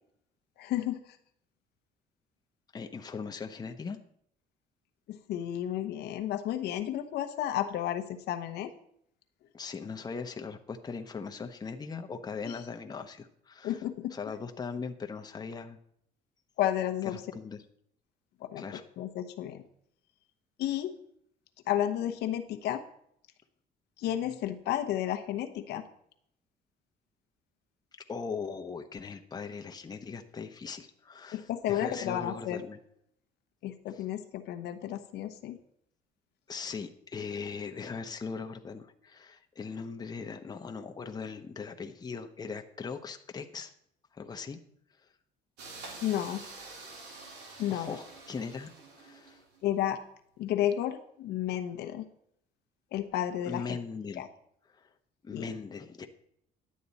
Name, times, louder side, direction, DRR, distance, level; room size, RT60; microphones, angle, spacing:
voice 1, 0.6-1.0 5.1-8.7 12.4-12.6 13.6-14.1 16.6-17.2 18.4-18.6 19.0-19.6 20.6-21.0 21.7-22.8 24.0-25.8 31.3-32.6 33.6-35.6 46.0-46.4 47.6-48.0 49.6-50.0 50.4-52.0 52.9-53.6 54.2-54.3 55.3-55.4, left 11 dB, 80° left, 6 dB, 1.0 m, -32 dB
voice 2, 2.7-4.0 9.5-13.8 14.1-15.8 17.1-17.6 18.6-18.8 28.1-32.8 33.9-34.0 36.5-43.7 44.1-44.6 47.7-49.4 53.5-54.2 54.7-54.9 55.2-56.1, left 5 dB, 25° left, 5 dB, 0.9 m, -39 dB
sound 1, 45.6-49.6, right 3 dB, 85° right, 2.6 m, -47 dB
11.5 x 8.4 x 4.2 m, 0.69 s
cardioid pair, 110°, 17 cm